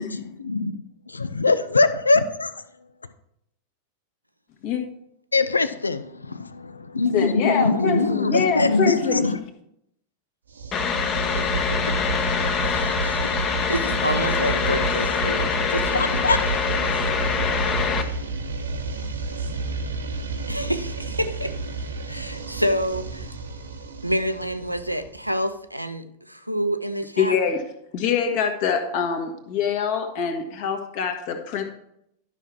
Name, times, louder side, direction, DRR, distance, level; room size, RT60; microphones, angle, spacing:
voice 1, 0.0-2.5 5.3-9.4 15.9-16.4 16.7-17.1, left 3 dB, 80° left, 13 dB, 0.6 m, -23 dB
voice 2, 7.1-9.2 27.2-27.6 27.9-31.6, left 6 dB, 50° left, 4 dB, 1.7 m, -24 dB
sound 1, 10.5-25.3, right 3 dB, 70° right, 1.0 m, -30 dB
sound 2, 10.7-18.0, left 6 dB, 30° left, 1.1 m, -25 dB
voice 3, 12.6-13.3 13.7-16.2 20.5-21.5 22.1-23.3 24.0-27.3, equal, 90° right, 9 dB, 0.6 m, -28 dB
12.0 x 6.1 x 4.6 m, 0.75 s
figure-of-eight pair, 90°, 0 cm